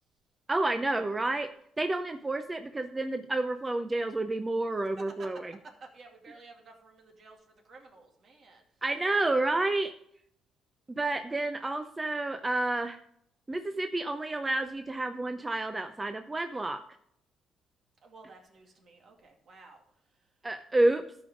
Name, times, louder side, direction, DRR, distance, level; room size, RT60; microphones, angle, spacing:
voice 1, 0.5-1.5 1.8-5.5 8.8-9.9 10.9-13.0 13.5-16.8 20.4-21.0, right 2 dB, 20° right, 8 dB, 0.6 m, -29 dB
voice 2, 5.0-5.3 5.6-8.6 18.0-20.3, right 3 dB, 55° right, 2 dB, 2.3 m, -53 dB
13.0 x 5.3 x 5.0 m, 0.72 s
cardioid pair, 90°, 0 cm